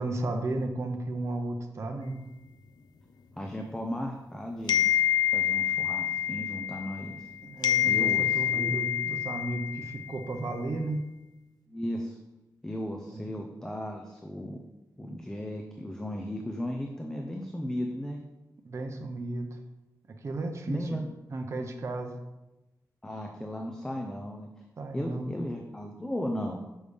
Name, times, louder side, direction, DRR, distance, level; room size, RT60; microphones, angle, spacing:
voice 1, 0.0-2.2 7.4-11.1 13.1-13.3 18.6-19.6 20.1-21.0 21.3-22.1 24.8-25.3, right 2 dB, 45° right, 4 dB, 0.6 m, -34 dB
voice 2, 3.4-4.8 5.3-7.2 7.9-8.8 11.7-12.2 12.6-14.6 15.0-18.2 20.7-21.1 23.0-24.5 24.9-26.7, left 1 dB, 10° left, 2 dB, 0.5 m, -36 dB
sound 1, 4.7-7.3 7.6-10.2, left 9 dB, 75° left, 0.4 m, -27 dB
6.5 x 5.3 x 3.4 m, 1.0 s
wide cardioid pair, 165°, 7 cm